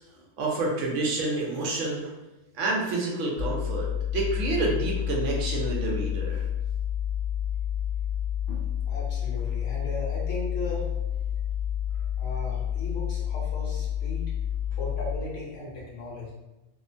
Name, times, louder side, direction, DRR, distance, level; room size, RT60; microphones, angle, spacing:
voice 1, 0.4-2.0 2.5-6.4, right 2 dB, 70° right, -2 dB, 0.9 m, -28 dB
sound 1, 3.4-15.2, left 9 dB, 25° right, 1.0 m, -29 dB
voice 2, 8.5-10.9 12.2-14.3 14.8-16.3, left 1 dB, 70° left, -5 dB, 1.1 m, -37 dB
2.8 x 2.1 x 2.5 m, 1.0 s
omnidirectional pair, 1.4 m